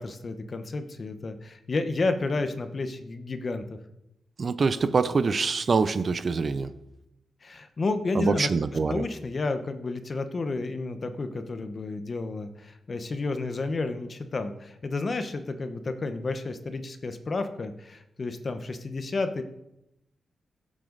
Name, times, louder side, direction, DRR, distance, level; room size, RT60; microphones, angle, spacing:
voice 1, 0.0-3.8 7.4-8.5 8.9-19.4, left 3 dB, 40° left, 9 dB, 1.0 m, -31 dB
voice 2, 4.4-6.7 8.1-9.0, right 4 dB, 40° right, 13 dB, 0.7 m, -25 dB
16.5 x 7.6 x 4.0 m, 0.85 s
wide cardioid pair, 120°, 0 cm